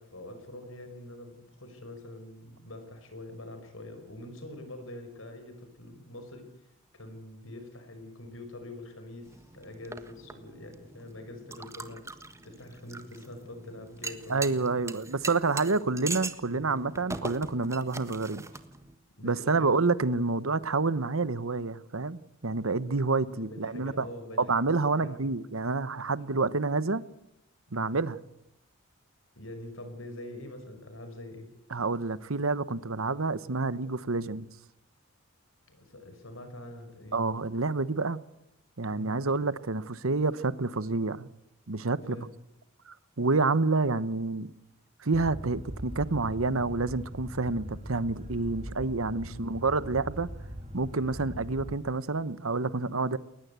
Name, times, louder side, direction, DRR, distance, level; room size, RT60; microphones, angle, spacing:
voice 1, 0.0-6.5 6.9-12.0 12.4-15.0 16.5-16.8 18.5-18.6 19.2-19.7 23.3-25.4 26.2-26.5 27.7-28.0 29.3-31.5 34.1-34.2 35.7-37.3 38.9-39.2 42.1-42.3 49.3-49.5, left 1 dB, 75° left, 5.5 m, -45 dB
sound 1, 9.2-18.9, right 3 dB, 15° right, 1.5 m, -42 dB
voice 2, 14.3-18.4 19.2-24.1 24.4-27.0 27.7-28.2 31.7-34.5 37.1-38.2 38.8-41.3 41.7-42.2 42.9-44.5 45.0-50.3 50.7-53.2, right 3 dB, 85° right, 1.1 m, -28 dB
sound 2, 45.1-51.8, equal, 30° right, 3.5 m, -41 dB
21.5 x 19.5 x 8.2 m
head